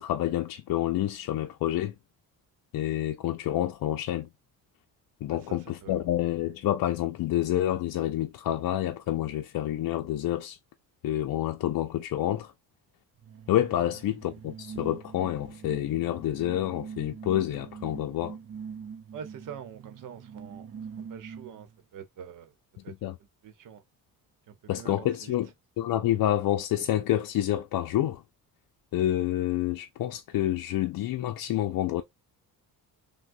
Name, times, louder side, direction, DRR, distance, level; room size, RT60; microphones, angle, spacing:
voice 1, 0.0-1.9 2.7-4.3 5.2-10.6 11.0-12.5 13.5-18.4 23.0-23.1 24.7-25.5 25.8-28.2 28.9-32.0, left 13 dB, 70° left, 0.5 m, -28 dB
voice 2, 5.3-6.0 13.8-13.9 19.1-20.7 21.0-22.5 22.8-22.9 23.4-23.8 24.5-25.4, right 8 dB, 60° right, 0.9 m, -45 dB
sound 1, 13.2-21.8, right 6 dB, 40° right, 0.6 m, -44 dB
6.1 x 2.2 x 2.6 m
cardioid pair, 165°, 36 cm